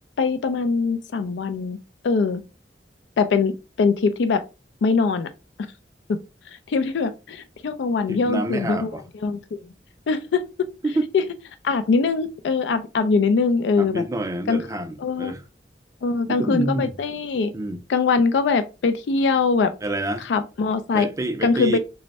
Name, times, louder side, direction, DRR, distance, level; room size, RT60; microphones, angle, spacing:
voice 1, 0.2-1.8 2.0-2.4 3.2-4.4 4.8-5.3 6.1-6.2 6.5-8.9 9.2-9.6 10.1-10.4 11.1-11.2 11.6-14.0 14.5-14.6 15.0-15.3 16.0-17.5 17.9-19.7 20.2-21.1 21.4-21.8, left 4 dB, 85° left, 0.4 m, -22 dB
voice 2, 8.1-9.0 10.8-11.1 13.8-15.4 16.2-16.9 17.5-17.8 19.8-20.3 20.9-21.8, right 1 dB, 20° right, 0.4 m, -28 dB
3.3 x 2.1 x 4.0 m
head